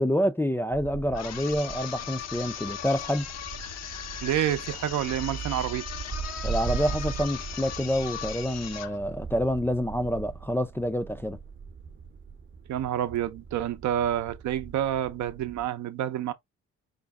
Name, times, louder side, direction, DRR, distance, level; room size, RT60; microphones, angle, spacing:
voice 1, 0.0-3.3 6.4-11.4, equal, 10° left, 0.4 m, -27 dB
sound 1, 0.7-15.7, right 6 dB, 40° right, 0.8 m, -40 dB
sound 2, 1.1-9.0, left 9 dB, 60° left, 0.7 m, -38 dB
voice 2, 4.2-5.9 12.7-16.3, right 11 dB, 70° right, 0.7 m, -28 dB
5.2 x 2.0 x 3.5 m
cardioid pair, 90°, 30 cm